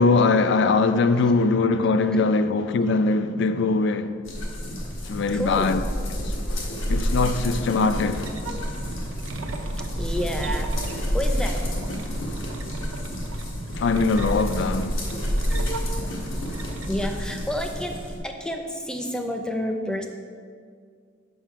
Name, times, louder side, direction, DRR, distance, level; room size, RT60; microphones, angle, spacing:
voice 1, 0.0-4.2 5.1-5.8 6.5-8.3 13.8-14.9, left 3 dB, 60° left, 0.4 m, -21 dB
sound 1, 4.2-18.2, equal, 80° left, 1.4 m, -29 dB
voice 2, 5.3-5.7 9.9-11.6 16.9-18.0 18.2-20.1, equal, 5° left, 0.5 m, -30 dB
sound 2, 7.9-17.4, right 2 dB, 85° right, 0.6 m, -35 dB
7.3 x 5.8 x 4.7 m
head